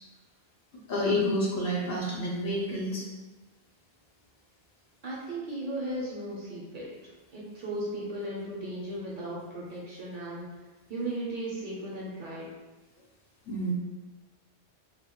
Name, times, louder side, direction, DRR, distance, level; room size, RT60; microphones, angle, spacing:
voice 1, 0.9-3.0 13.5-13.7, left 1 dB, 65° left, -3 dB, 0.7 m, -29 dB
voice 2, 5.0-10.5 10.9-12.5, right 1 dB, 60° right, -5 dB, 0.6 m, -36 dB
2.2 x 2.0 x 2.8 m, 1.2 s
omnidirectional pair, 1.1 m